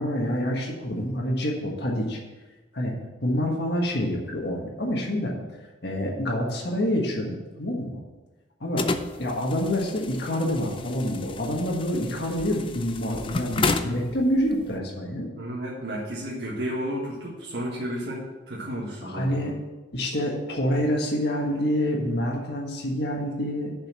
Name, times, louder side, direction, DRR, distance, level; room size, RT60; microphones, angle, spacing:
voice 1, 0.0-2.2 2.7-2.9 3.2-5.3 5.8-8.0 8.6-8.9 9.2-15.3 19.0-19.5 19.9-23.7, equal, 60° left, -1 dB, 1.6 m, -27 dB
sound 1, 8.8-14.8, left 3 dB, 25° left, 0.4 m, -32 dB
voice 2, 15.3-19.6, equal, 60° right, -5 dB, 1.7 m, -32 dB
7.0 x 5.6 x 7.5 m, 1.2 s
head